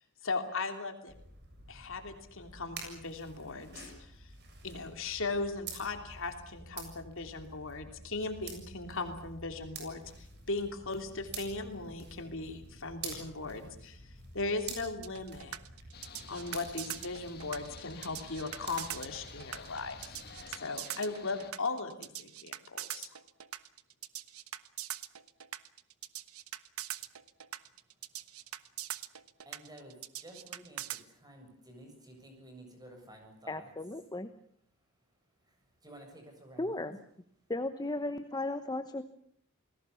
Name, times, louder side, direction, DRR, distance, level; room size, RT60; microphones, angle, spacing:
voice 1, 0.2-1.1 1.7-4.3 4.6-14.0 14.3-15.6 16.3-20.2 20.5-23.1, left 3 dB, 65° left, 6 dB, 3.1 m, -38 dB
sound 1, 1.1-20.5, right 3 dB, 50° right, 7.2 m, -49 dB
sound 2, 15.0-31.0, right 12 dB, 80° right, 1.2 m, -42 dB
sound 3, 15.9-21.5, left 6 dB, 45° left, 2.1 m, -51 dB
voice 2, 29.5-33.7 35.8-36.9, right 1 dB, 20° right, 4 dB, 7.5 m, -52 dB
voice 3, 33.5-34.3 36.6-37.0 37.5-39.0, left 2 dB, 20° left, 11 dB, 1.0 m, -35 dB
29.0 x 20.0 x 7.1 m, 0.65 s
head